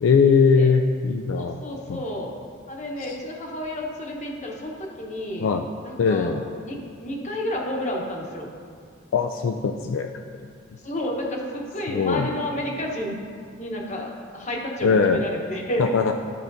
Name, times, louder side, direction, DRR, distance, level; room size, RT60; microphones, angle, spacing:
voice 1, 0.0-1.6 1.9-2.0 3.0-3.2 5.4-5.7 6.0-6.4 9.1-10.1 11.9-12.3 14.8-15.2 15.8-16.2, left 5 dB, 70° left, 4 dB, 0.3 m, -20 dB
voice 2, 1.4-2.3 2.7-5.5 5.8-6.3 6.6-8.5 10.8-13.2 13.6-15.9, left 1 dB, 35° left, 0 dB, 1.0 m, -31 dB
12.0 x 5.7 x 2.7 m, 2.1 s
head